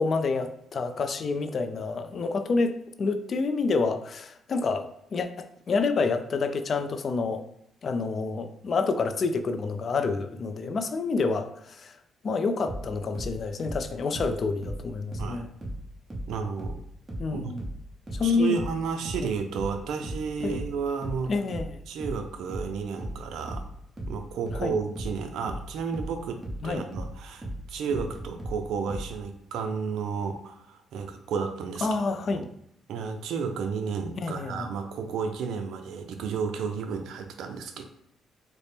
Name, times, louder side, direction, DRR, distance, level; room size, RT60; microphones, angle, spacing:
voice 1, 0.0-7.4 7.8-12.0 12.2-15.5 17.2-17.7 18.1-18.6 20.4-20.6 21.3-21.8 24.5-24.8 26.6-26.8 31.8-32.5 34.2-34.7, left 4 dB, 50° left, 9 dB, 0.3 m, -28 dB
sound 1, 12.7-15.8 16.1-29.1, right 1 dB, 20° right, 1.0 m, -36 dB
voice 2, 16.3-16.8 17.3-17.5 18.2-21.3 21.9-23.6 24.1-31.9 32.3-32.4 32.9-37.8, right 5 dB, 80° right, 6 dB, 0.4 m, -32 dB
4.1 x 2.0 x 3.3 m, 0.76 s
cardioid pair, 90°, 0 cm